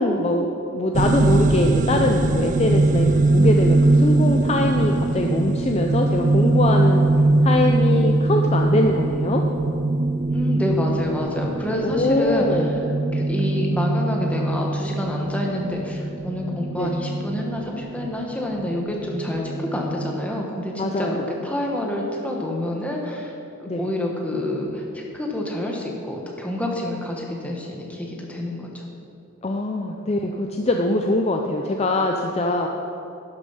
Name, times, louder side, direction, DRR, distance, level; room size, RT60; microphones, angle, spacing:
voice 1, 0.0-7.1 7.4-9.4 11.8-12.7 16.7-16.9 20.8-21.3 23.7-23.9 29.4-32.7, left 2 dB, 30° left, 2 dB, 0.4 m, -23 dB
sound 1, 0.9-20.3, right 2 dB, 35° right, 0.3 m, -21 dB
voice 2, 10.3-12.7 13.1-23.3 23.6-28.8, left 1 dB, 5° left, -1 dB, 1.1 m, -28 dB
11.5 x 6.9 x 5.6 m, 2.8 s
head